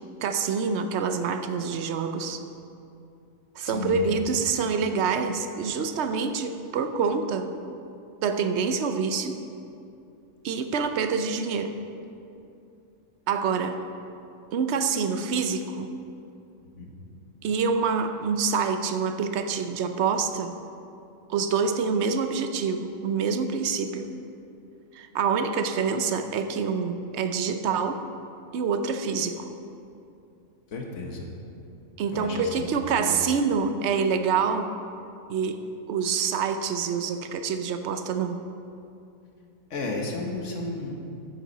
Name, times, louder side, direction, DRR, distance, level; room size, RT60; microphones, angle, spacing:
voice 1, 0.2-2.4 3.6-7.5 8.2-9.4 10.4-11.7 13.3-13.8 14.5-15.9 17.4-20.6 21.3-24.1 24.9-28.0 28.5-29.5 32.0-34.7 35.3-38.4, right 5 dB, 60° right, 8 dB, 0.9 m, -26 dB
voice 2, 3.7-4.2 16.8-16.9 30.7-31.3 32.1-33.2 39.7-41.0, left 2 dB, 60° left, 0 dB, 1.6 m, -33 dB
14.0 x 8.5 x 4.1 m, 2.6 s
omnidirectional pair, 1.4 m